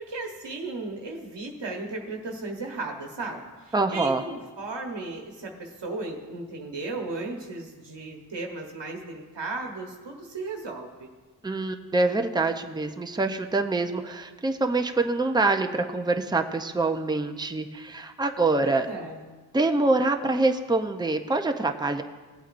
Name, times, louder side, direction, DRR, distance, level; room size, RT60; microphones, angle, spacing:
voice 1, 0.0-11.1 18.6-19.2, right 3 dB, 75° right, 1 dB, 1.2 m, -35 dB
voice 2, 3.7-4.2 11.4-18.9 19.5-22.0, right 3 dB, 10° right, 5 dB, 0.6 m, -25 dB
17.5 x 8.2 x 2.6 m, 1.3 s
wide cardioid pair, 65°, 43 cm